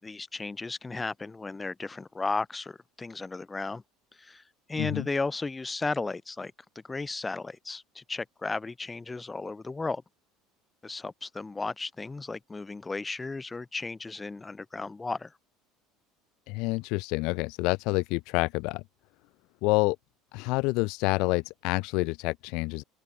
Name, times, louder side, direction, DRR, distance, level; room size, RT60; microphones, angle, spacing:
voice 1, 0.0-3.8 4.2-4.4 4.7-6.5 6.8-10.0 10.8-15.3, left 3 dB, 10° left, 4.5 m, -34 dB
voice 2, 4.8-5.1 16.5-18.8 19.6-20.0 20.3-22.8, left 25 dB, 60° left, 0.5 m, -28 dB
open air
cardioid pair, 170°, 0 cm